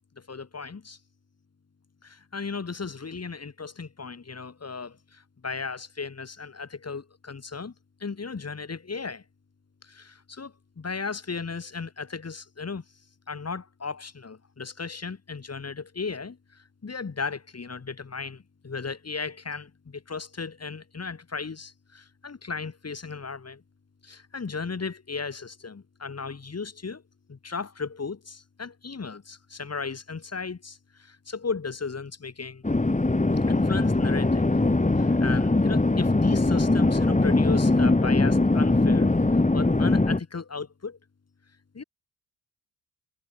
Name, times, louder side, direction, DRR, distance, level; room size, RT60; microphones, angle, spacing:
voice 1, 0.2-1.0 2.0-7.7 8.0-9.2 9.8-12.8 13.3-23.6 24.0-27.0 27.3-32.6 33.4-34.5 34.9-41.0 41.7-41.8, left 4 dB, 35° left, 5.8 m, -36 dB
sound 1, 32.6-40.2, left 2 dB, 15° left, 4.4 m, -21 dB
hypercardioid pair, 45°, 44 cm